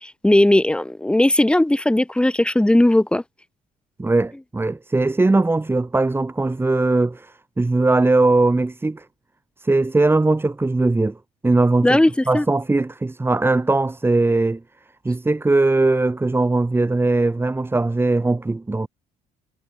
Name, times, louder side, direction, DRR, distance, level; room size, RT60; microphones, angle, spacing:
voice 1, 0.0-3.2 11.8-12.5, left 1 dB, 5° left, 2.1 m, -17 dB
voice 2, 4.0-9.1 9.6-11.2 11.4-12.0 12.3-14.6 15.0-18.9, right 2 dB, 15° right, 1.8 m, -19 dB
cardioid pair, 110°, 17 cm